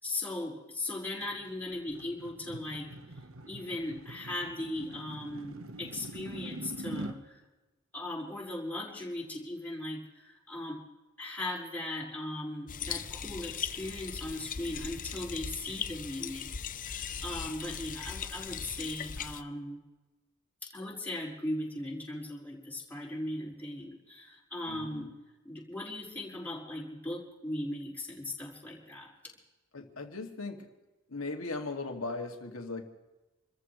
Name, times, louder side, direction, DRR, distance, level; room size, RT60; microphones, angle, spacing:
voice 1, 0.0-2.9 3.5-7.4 7.9-10.8 11.2-16.5 16.9-19.8 20.6-25.1 25.4-29.1, left 1 dB, 10° left, -5 dB, 5.0 m, -38 dB
sound 1, 1.2-7.2, right 1 dB, 75° right, 1.2 m, -44 dB
sound 2, 12.7-19.4, left 7 dB, 40° left, 0.7 m, -39 dB
voice 2, 24.7-25.1 29.7-30.7 31.1-32.8, left 3 dB, 75° left, 3 dB, 2.3 m, -38 dB
28.5 x 14.5 x 3.2 m, 1.1 s
head